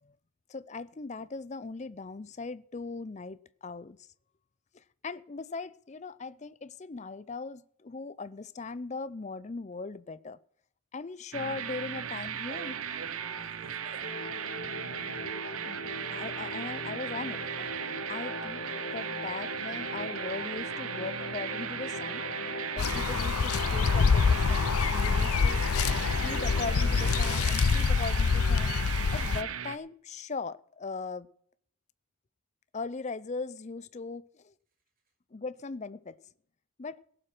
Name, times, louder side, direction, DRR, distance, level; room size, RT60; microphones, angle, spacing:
voice 1, 0.5-4.1 4.7-10.4 10.9-12.7 15.6-15.8 16.1-17.7 18.1-18.6 18.9-22.3 22.7-25.7 26.2-28.8 29.1-31.3 32.7-34.5 35.3-36.2 36.8-37.0, left 4 dB, 30° left, 0.5 m, -39 dB
sound 1, 11.3-29.8, right 8 dB, 80° right, 0.8 m, -37 dB
voice 2, 12.4-14.4 18.1-18.4, right 4 dB, 40° right, 2.8 m, -50 dB
sound 2, 14.0-27.4, left 2 dB, 50° left, 1.0 m, -40 dB
sound 3, 22.8-29.4, left 5 dB, 90° left, 0.5 m, -26 dB
17.5 x 7.9 x 6.0 m
head